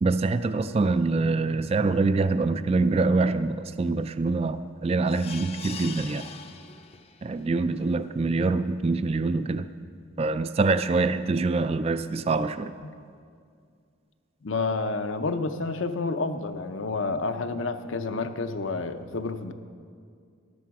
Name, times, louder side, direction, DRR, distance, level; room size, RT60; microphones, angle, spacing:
voice 1, 0.0-6.3 7.2-9.7 10.2-12.8, right 3 dB, 30° right, 12 dB, 0.3 m, -25 dB
sound 1, 5.1-7.3 7.8-7.9 8.2-8.3, left 6 dB, 30° left, 0.6 m, -42 dB
voice 2, 14.4-19.5, left 3 dB, 70° left, 9 dB, 0.7 m, -29 dB
13.0 x 11.5 x 4.7 m, 2.2 s
head